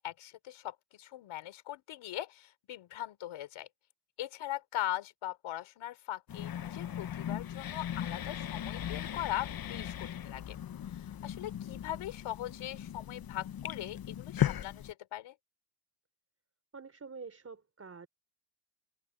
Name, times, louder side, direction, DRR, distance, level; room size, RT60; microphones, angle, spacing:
voice 1, 0.0-3.7 4.2-10.6 10.9-15.3, left 13 dB, 85° left, 4.7 m, -40 dB
sound 1, 6.3-14.9, left 10 dB, 50° left, 1.0 m, -37 dB
voice 2, 16.7-18.1, right 4 dB, 30° right, 3.6 m, -47 dB
cardioid pair, 95°, 47 cm